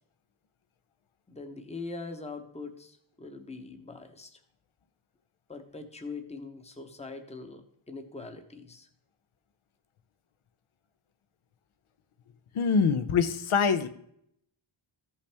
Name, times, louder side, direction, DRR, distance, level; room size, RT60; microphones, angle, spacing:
voice 1, 1.3-4.4 5.5-8.9, left 3 dB, 15° left, 7 dB, 0.8 m, -42 dB
voice 2, 12.5-13.9, left 5 dB, 80° left, 10 dB, 0.8 m, -24 dB
14.5 x 5.7 x 3.4 m, 0.71 s
wide cardioid pair, 165°, 48 cm